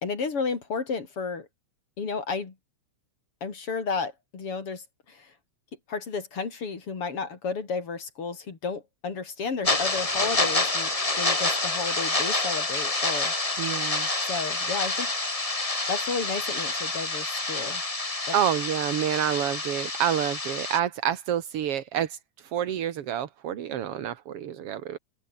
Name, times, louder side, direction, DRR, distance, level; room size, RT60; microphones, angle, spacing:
voice 1, 0.0-1.5 2.0-2.5 3.4-5.3 5.9-10.9 11.2-13.3 14.3-15.1 15.9-17.8 18.3-18.4, left 4 dB, 50° left, 4.0 m, -32 dB
sound 1, 9.6-20.8, left 2 dB, 15° left, 1.4 m, -28 dB
voice 2, 13.6-14.1 18.3-25.0, right 10 dB, 55° right, 2.2 m, -28 dB
open air
omnidirectional pair, 3.5 m